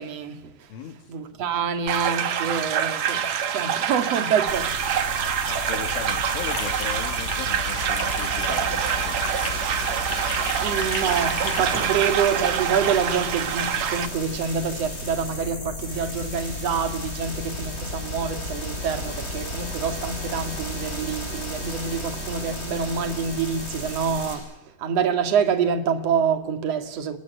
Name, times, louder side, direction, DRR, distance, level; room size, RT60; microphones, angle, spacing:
voice 1, 0.0-0.5 1.1-4.9 10.6-24.5 24.8-27.2, right 6 dB, 45° right, 2.3 m, -26 dB
sound 1, 1.9-14.1, right 9 dB, 75° right, 1.6 m, -26 dB
sound 2, 4.5-24.3, left 1 dB, 10° left, 7.5 m, -33 dB
sound 3, 5.3-7.4 7.7-11.9, left 6 dB, 45° left, 3.3 m, -36 dB
voice 2, 5.5-10.6, left 9 dB, 75° left, 4.3 m, -38 dB
27.5 x 20.5 x 9.5 m
omnidirectional pair, 5.6 m